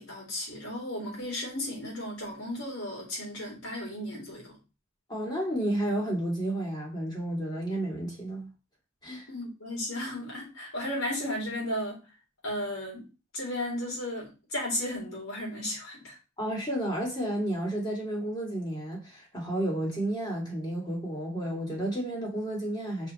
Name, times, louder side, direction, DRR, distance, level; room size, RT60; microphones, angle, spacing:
voice 1, 0.0-4.6 9.3-12.0 12.4-13.1 13.3-16.2, left 1 dB, 80° left, 3.9 m, -34 dB
voice 2, 5.1-8.5 9.0-9.3 16.4-23.1, right 1 dB, 20° left, 2.4 m, -31 dB
5.6 x 4.6 x 4.4 m
head